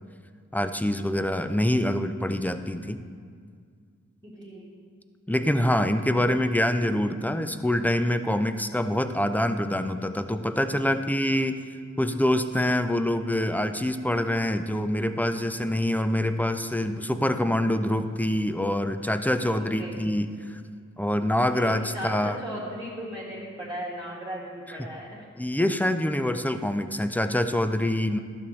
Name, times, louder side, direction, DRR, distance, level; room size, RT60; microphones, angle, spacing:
voice 1, 0.5-3.0 5.3-11.6 12.0-20.6 21.0-22.4 24.8-24.9 25.4-28.2, left 1 dB, 5° left, 9 dB, 0.4 m, -25 dB
voice 2, 4.2-4.7 19.6-20.1 21.5-25.3, equal, 10° right, -6 dB, 1.9 m, -37 dB
12.0 x 7.0 x 3.2 m, 2.1 s
wide cardioid pair, 55°, 31 cm